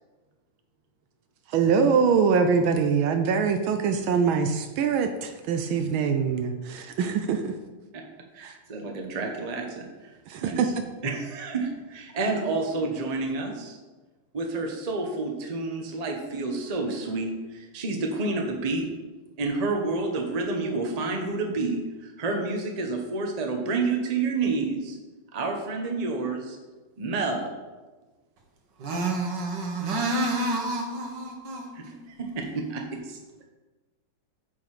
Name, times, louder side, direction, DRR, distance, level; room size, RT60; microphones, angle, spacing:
voice 1, 1.5-7.5 8.4-8.6 10.3-10.7, right 6 dB, 80° right, 1.4 m, -23 dB
voice 2, 8.3-10.1 10.4-10.7 11.0-13.8 14.3-18.9 19.4-25.0 25.3-26.6 27.0-27.5 31.7-31.8 32.3-33.2, right 3 dB, 25° right, 0.9 m, -29 dB
voice 3, 28.8-32.0, right 2 dB, 60° right, 2.0 m, -29 dB
8.9 x 5.7 x 4.9 m
omnidirectional pair, 2.2 m